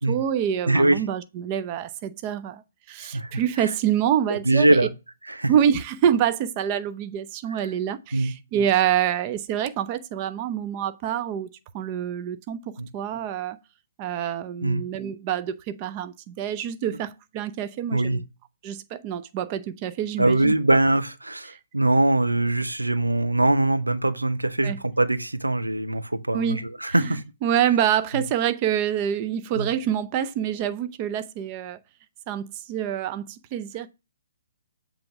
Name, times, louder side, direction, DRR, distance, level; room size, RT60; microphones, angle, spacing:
voice 1, 0.1-2.6 2.9-4.9 5.5-11.5 11.7-13.6 14.0-18.2 18.6-20.5 21.5-21.6 24.6-24.8 26.3-27.1 27.4-31.8 32.3-33.9, right 9 dB, 30° right, 0.6 m, -26 dB
voice 2, 0.7-1.0 3.0-3.7 4.3-4.9 5.3-5.5 7.6-7.7 8.1-8.3 12.8-12.9 14.6-14.8 17.9-18.2 20.2-27.2 28.1-28.2 29.6-29.7, right 2 dB, 90° right, 0.8 m, -22 dB
7.7 x 3.5 x 6.0 m
figure-of-eight pair, 130°, 0 cm